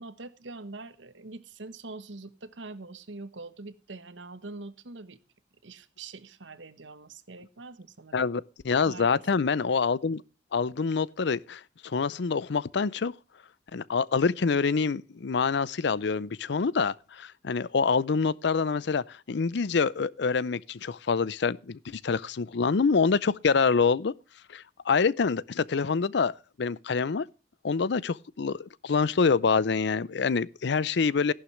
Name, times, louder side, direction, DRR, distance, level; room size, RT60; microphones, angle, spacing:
voice 1, 0.0-5.2 5.6-8.3 8.8-9.2, right 3 dB, 85° right, 1.2 m, -44 dB
voice 2, 8.1-10.2 10.5-13.1 13.7-24.1 24.5-26.3 26.6-27.3 27.6-31.3, left 5 dB, 65° left, 0.5 m, -26 dB
14.5 x 11.5 x 3.2 m
head